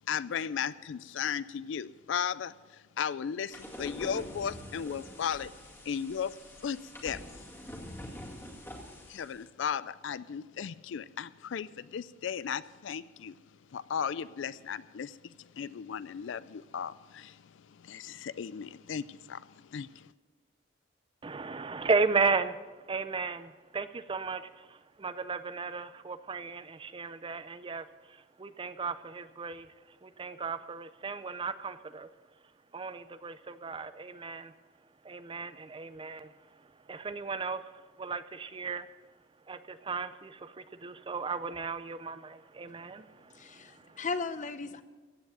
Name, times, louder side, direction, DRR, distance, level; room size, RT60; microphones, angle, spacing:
voice 1, 0.1-5.5 5.8-6.4 6.6-7.2 9.1-13.3 13.7-20.1, left 7 dB, 70° left, 17 dB, 0.4 m, -36 dB
sound 1, 3.5-9.4, equal, 10° left, 2.0 m, -45 dB
voice 2, 21.2-32.1 32.7-34.5 35.0-38.9 39.5-44.0, right 4 dB, 25° right, 13 dB, 0.5 m, -35 dB
voice 3, 43.3-44.8, left 4 dB, 40° left, 12 dB, 0.7 m, -36 dB
15.5 x 7.9 x 7.8 m, 1.3 s
head